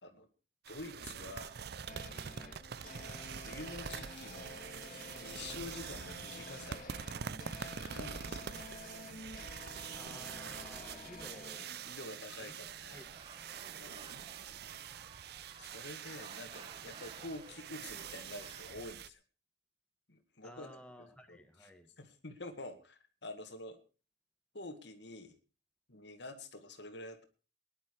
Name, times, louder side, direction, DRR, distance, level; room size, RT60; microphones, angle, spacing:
voice 1, 0.7-1.6 2.9-6.9 7.6-8.7 11.8-13.0 13.8-14.2 15.6-19.2 20.1-20.7 21.0-21.7 22.0-23.8 24.5-25.4 25.9-27.2, left 2 dB, 70° left, 7 dB, 2.0 m, -48 dB
sound 1, 0.7-19.1, right 7 dB, 60° right, 0.6 m, -45 dB
sound 2, 1.8-11.9, left 2 dB, 50° left, 2.4 m, -50 dB
voice 2, 9.9-11.6 12.3-12.5 12.9-13.1 13.4-13.8 20.4-21.9, left 1 dB, 5° left, 5 dB, 1.7 m, -54 dB
sound 3, 12.7-18.8, right 4 dB, 30° right, 1.1 m, -56 dB
18.5 x 11.0 x 4.7 m, 0.35 s
head